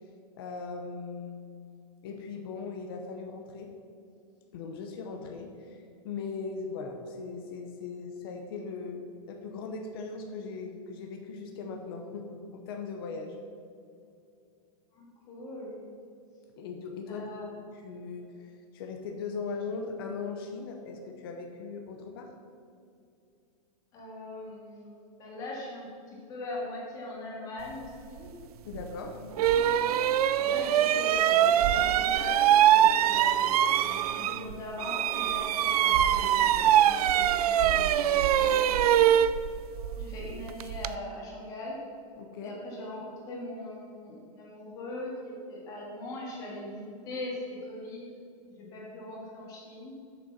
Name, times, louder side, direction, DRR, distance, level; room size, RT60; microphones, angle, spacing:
voice 1, 0.3-1.4 2.0-3.7 4.5-13.4 16.6-17.3 17.7-22.3 28.6-29.2 42.2-42.6, left 4 dB, 40° left, 3 dB, 0.8 m, -39 dB
voice 2, 14.9-15.8 17.1-17.6 23.9-24.9 25.2-28.3 29.1-30.1 30.4-39.1 40.0-41.8 42.4-48.1 48.5-49.9, left 1 dB, 20° left, -3 dB, 1.7 m, -41 dB
sound 1, 28.7-28.9 29.4-34.5 34.8-41.0, right 10 dB, 85° right, 0.4 m, -23 dB
6.8 x 6.5 x 5.9 m, 2.5 s
supercardioid pair, 180°, 19 cm